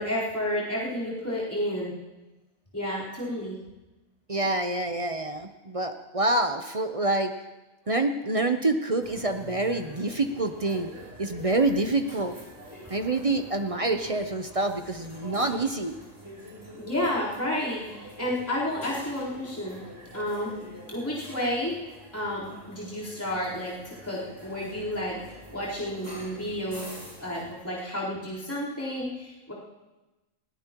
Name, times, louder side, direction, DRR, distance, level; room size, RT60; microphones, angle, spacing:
voice 1, 0.0-1.9 2.7-3.5 16.8-19.8 20.1-21.7 22.1-25.1 25.5-26.9 27.2-29.5, left 1 dB, 10° left, -9 dB, 4.1 m, -31 dB
voice 2, 4.3-7.3 7.9-10.9 11.2-12.3 12.9-15.9, right 2 dB, 35° right, 6 dB, 0.7 m, -27 dB
sound 1, 9.0-27.5, equal, 15° right, 3.3 m, -46 dB
20.0 x 16.5 x 3.0 m, 1.1 s
omnidirectional pair, 1.4 m